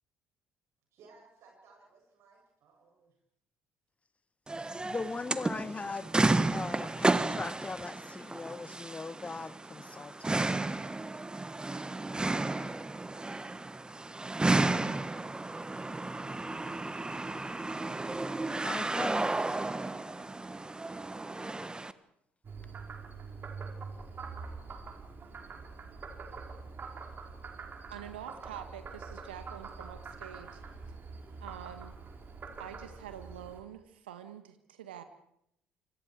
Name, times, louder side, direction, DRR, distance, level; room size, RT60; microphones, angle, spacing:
voice 1, 0.9-3.2, right 4 dB, 55° right, 7.9 m, -60 dB
sound 1, 4.5-21.9, right 2 dB, 15° right, 1.4 m, -32 dB
voice 2, 4.8-6.1 6.5-10.5 18.5-19.3, left 3 dB, 25° left, 1.3 m, -39 dB
Frog, 22.4-33.6, right 4 dB, 40° right, 4.7 m, -45 dB
voice 3, 27.9-30.7 31.4-32.0 32.6-35.0, right 10 dB, 80° right, 1.6 m, -46 dB
27.5 x 26.0 x 4.9 m
figure-of-eight pair, 50°, 6 cm